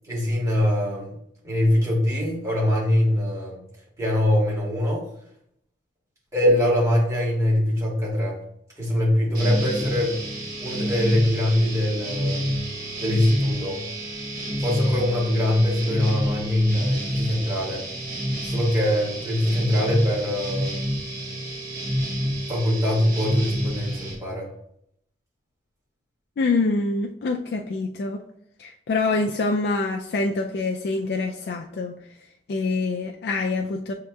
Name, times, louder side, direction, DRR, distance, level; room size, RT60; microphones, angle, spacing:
voice 1, 0.1-1.1 1.4-3.6 4.0-5.1 6.3-8.4 8.8-10.2 10.6-12.5 13.0-13.8 14.6-17.8 18.4-20.8 22.5-24.5, left 1 dB, 15° right, 1.5 m, -23 dB
sound 1, 9.3-24.1, equal, 50° right, 1.1 m, -29 dB
voice 2, 26.4-28.2 28.6-32.0 32.5-33.9, left 3 dB, 65° left, 0.3 m, -25 dB
7.2 x 2.8 x 2.2 m
head